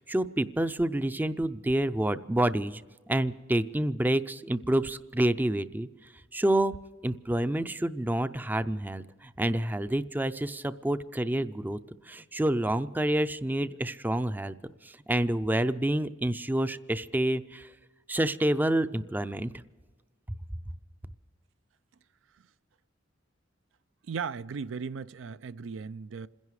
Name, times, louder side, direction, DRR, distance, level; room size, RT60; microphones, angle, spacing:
voice 1, 0.0-2.8 3.1-5.9 6.3-6.8 7.0-11.8 12.1-14.5 14.8-17.7 18.1-19.5, right 1 dB, 10° right, 0.4 m, -28 dB
voice 2, 24.0-26.3, right 5 dB, 90° right, 0.4 m, -37 dB
27.5 x 10.5 x 4.8 m
head